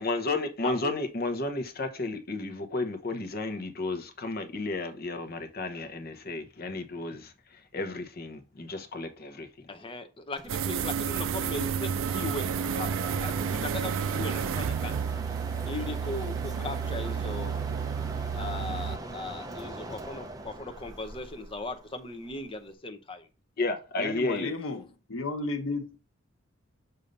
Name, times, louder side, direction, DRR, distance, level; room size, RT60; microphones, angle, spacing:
voice 1, 0.0-7.3 7.7-9.5 23.6-24.5, left 2 dB, 50° left, 0.9 m, -32 dB
voice 2, 0.6-0.9 9.7-15.0 15.6-17.5 18.3-23.3 24.3-24.5, left 2 dB, 25° left, 0.7 m, -38 dB
Mechanisms, 10.3-22.7, right 2 dB, 20° right, 0.6 m, -41 dB
sound 1, 10.5-19.0, right 7 dB, 85° right, 0.4 m, -31 dB
voice 3, 24.0-26.0, left 3 dB, 90° left, 1.1 m, -33 dB
6.7 x 2.8 x 5.1 m
head